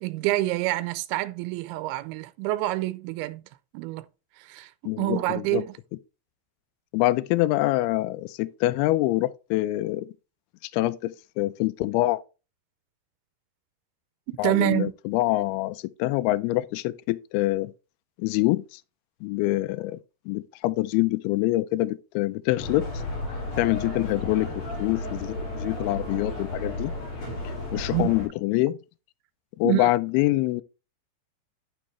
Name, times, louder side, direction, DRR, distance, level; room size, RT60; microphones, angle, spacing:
voice 1, 0.0-3.4 3.7-4.1 4.4-5.8 14.3-14.9 27.3-27.4 27.9-28.1 29.6-29.9, right 18 dB, 80° right, 2.5 m, -27 dB
voice 2, 4.9-5.6 6.9-10.1 10.6-12.2 14.4-17.7 18.2-18.8 19.2-20.0 20.3-22.9 23.6-26.9 27.4-28.8 29.6-30.6, left 17 dB, 80° left, 2.3 m, -25 dB
sound 1, 22.6-28.3, left 2 dB, 50° left, 5.3 m, -33 dB
11.5 x 4.4 x 3.2 m
omnidirectional pair, 4.7 m